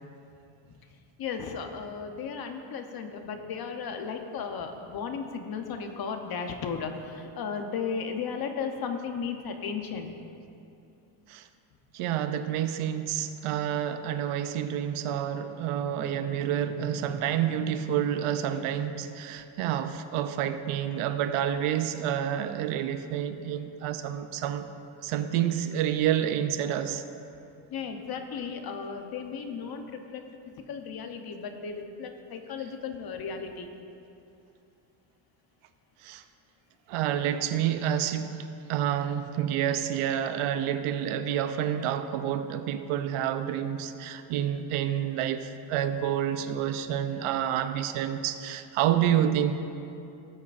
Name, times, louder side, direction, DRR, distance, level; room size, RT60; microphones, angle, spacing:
voice 1, 1.2-10.1 27.7-30.2 30.7-33.7, left 6 dB, 45° left, 0.9 m, -35 dB
voice 2, 11.9-24.7 25.0-27.0 36.0-36.2 36.9-38.4 38.7-49.6, right 10 dB, 90° right, 0.7 m, -28 dB
18.5 x 8.3 x 2.5 m
cardioid pair, 140°, 49 cm